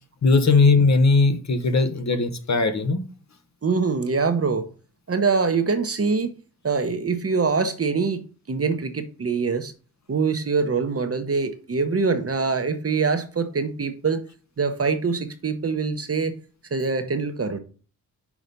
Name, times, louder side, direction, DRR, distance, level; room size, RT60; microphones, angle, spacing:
voice 1, 0.2-3.0, left 3 dB, 45° left, 1.1 m, -19 dB
voice 2, 3.6-4.7 5.1-6.3 6.6-8.2 8.5-9.7 10.1-14.2 14.6-16.3 16.7-17.6, right 4 dB, 35° right, 0.9 m, -24 dB
6.1 x 4.0 x 5.2 m
cardioid pair, 70°, 39 cm